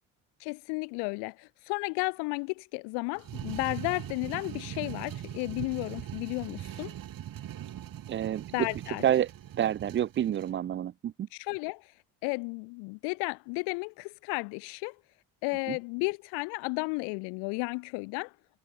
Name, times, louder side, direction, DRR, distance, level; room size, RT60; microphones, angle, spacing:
voice 1, 0.4-6.9 8.5-9.0 11.3-11.9 12.2-15.0 15.4-18.3, left 34 dB, 85° left, 0.6 m, -33 dB
sound 1, 3.2-10.5, right 11 dB, 60° right, 3.0 m, -41 dB
voice 2, 8.1-8.7 9.0-9.3 9.6-11.3 15.7-15.8, right 10 dB, 30° right, 0.4 m, -28 dB
supercardioid pair, 75°, 39 cm